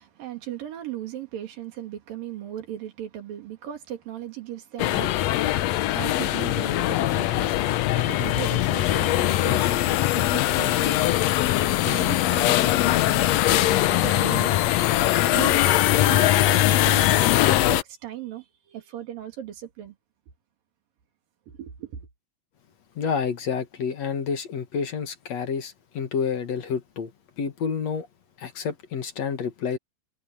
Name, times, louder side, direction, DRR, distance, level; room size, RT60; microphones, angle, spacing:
voice 1, 0.0-11.2 11.8-14.7 15.3-15.7 16.0-17.1 17.4-20.0 21.5-22.1, right 11 dB, 90° right, 4.1 m, -37 dB
sound 1, 4.8-17.8, left 15 dB, 80° left, 1.5 m, -21 dB
voice 2, 23.0-27.1 27.4-28.1 28.4-29.8, left 6 dB, 55° left, 2.7 m, -29 dB
omnidirectional pair, 3.9 m